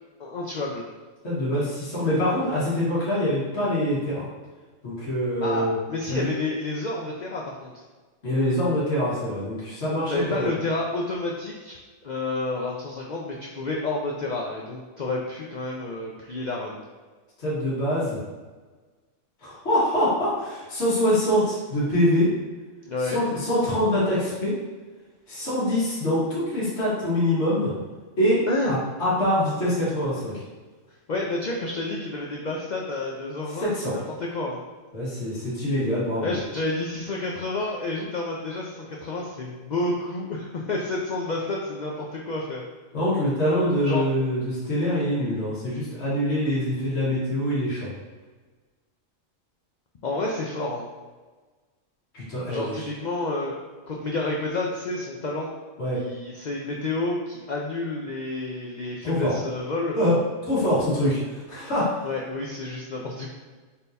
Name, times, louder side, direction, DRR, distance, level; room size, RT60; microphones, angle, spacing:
voice 1, 0.2-0.8 5.4-7.8 10.1-11.8 12.0-16.8 22.9-23.2 28.5-28.8 31.1-34.6 36.2-42.6 43.8-44.1 50.0-50.9 52.5-53.6 53.9-55.5 55.9-60.0 62.0-63.3, left 2 dB, 90° left, -2 dB, 0.4 m, -30 dB
voice 2, 1.2-4.2 4.8-5.7 6.1-6.3 8.2-10.5 17.4-18.2 19.4-22.3 23.0-24.6 25.3-27.7 28.2-30.4 33.6-34.0 34.9-36.4 42.9-47.9 52.1-52.8 55.8-56.0 59.0-59.3 60.0-61.2 61.5-62.0, equal, 55° left, -9 dB, 1.7 m, -24 dB
4.2 x 3.6 x 2.6 m, 1.3 s
omnidirectional pair, 1.4 m